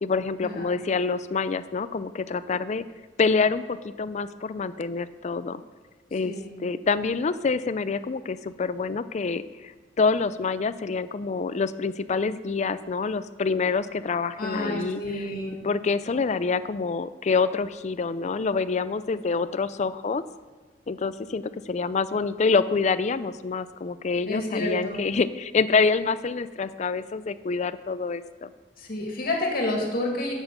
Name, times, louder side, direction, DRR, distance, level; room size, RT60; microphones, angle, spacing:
voice 1, 0.0-2.8 3.2-5.6 6.1-6.3 6.6-15.0 15.6-20.2 20.9-28.5, left 4 dB, 40° left, 14 dB, 0.4 m, -26 dB
voice 2, 14.4-15.6 24.3-25.0 28.8-30.3, left 1 dB, 55° left, 0 dB, 2.3 m, -29 dB
8.1 x 7.9 x 6.7 m, 1.4 s
head